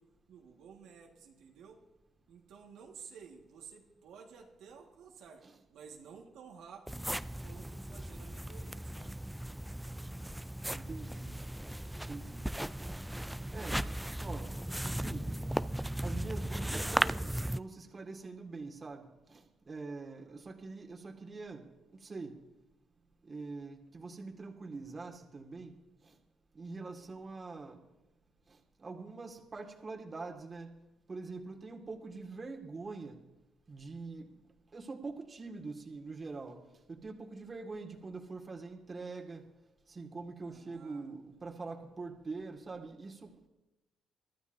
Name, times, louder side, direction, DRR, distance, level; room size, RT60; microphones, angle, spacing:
voice 1, 0.0-1.8 2.3-9.2 20.0-20.4 27.0-27.3 40.4-41.6, right 6 dB, 85° right, 1.6 m, -54 dB
sound 1, 6.9-17.6, right 1 dB, 5° right, 0.4 m, -37 dB
voice 2, 10.7-11.3 12.1-12.5 12.8-12.9 13.5-13.9 14.2-14.6 14.9-15.3 16.0-22.4 23.2-25.8 26.0-26.2 26.5-27.8 28.5-30.8 31.1-33.2 33.7-34.4 34.7-36.6 36.9-39.5 39.9-43.5, right 3 dB, 30° right, 1.9 m, -44 dB
24.0 x 12.5 x 2.7 m
cardioid pair, 90°, 0 cm